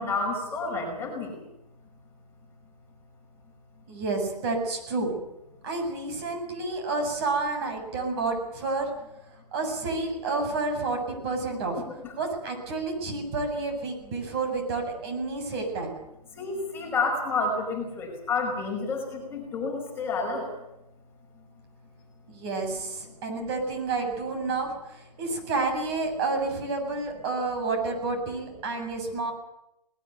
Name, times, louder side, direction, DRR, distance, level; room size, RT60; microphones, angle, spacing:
voice 1, 0.0-1.4 12.0-12.1 16.3-20.5, left 3 dB, 10° left, -1 dB, 5.6 m, -29 dB
voice 2, 3.9-5.1 5.6-8.9 9.5-11.8 12.2-15.9 22.3-29.3, right 3 dB, 40° right, 3 dB, 7.6 m, -30 dB
20.0 x 20.0 x 9.4 m, 0.87 s
hypercardioid pair, 155°, 21 cm